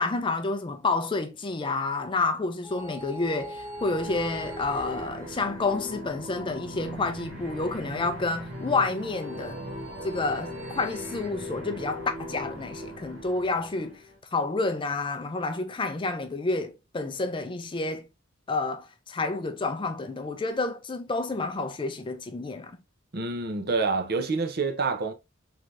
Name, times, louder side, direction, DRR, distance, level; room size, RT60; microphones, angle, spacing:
voice 1, 0.0-9.6 10.0-14.0 14.3-18.1 18.5-22.8, left 3 dB, 25° left, 0.4 m, -29 dB
sound 1, 2.6-5.9 8.7-11.3, right 1 dB, 20° right, 1.8 m, -42 dB
sound 2, 3.7-14.2, equal, 70° right, 1.4 m, -40 dB
voice 2, 23.1-25.1, right 4 dB, 50° right, 0.7 m, -27 dB
3.7 x 3.3 x 2.6 m
head